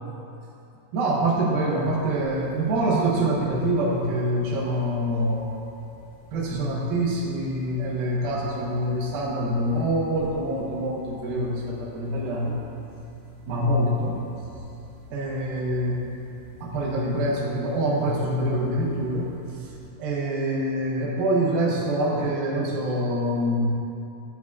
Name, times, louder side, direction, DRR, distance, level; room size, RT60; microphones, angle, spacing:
voice 1, 0.9-5.6 6.3-12.6 13.5-14.2 15.1-16.0 16.6-19.3 19.6-19.7 20.0-23.7, right 1 dB, 85° right, -4 dB, 2.9 m, -25 dB
sound 1, 1.7-19.9, right 1 dB, 50° right, 1.8 m, -46 dB
12.0 x 7.0 x 2.4 m, 2.7 s
omnidirectional pair, 4.1 m